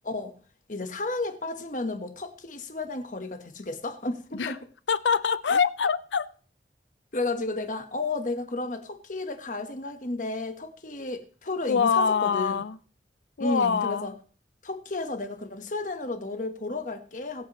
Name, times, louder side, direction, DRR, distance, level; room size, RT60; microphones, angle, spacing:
voice 1, 0.7-4.6 7.1-12.6 13.4-14.1 14.6-17.5, left 2 dB, 45° left, 1.3 m, -32 dB
voice 2, 4.9-6.3 11.7-12.8 13.4-14.1, left 6 dB, 90° left, 0.5 m, -24 dB
22.5 x 8.3 x 3.1 m
head